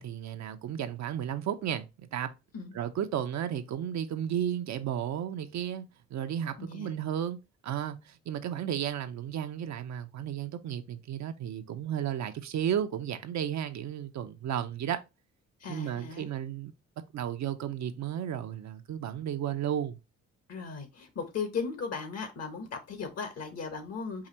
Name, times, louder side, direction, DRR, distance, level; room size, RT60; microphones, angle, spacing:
voice 1, 0.0-2.3 2.7-5.9 6.1-7.4 7.6-15.0 15.7-16.7 17.1-20.0, right 9 dB, 65° right, 0.7 m, -33 dB
voice 2, 6.6-7.0 15.6-16.3 20.5-24.3, left 5 dB, 55° left, 1.2 m, -37 dB
4.9 x 2.5 x 4.2 m
cardioid pair, 90°, 30 cm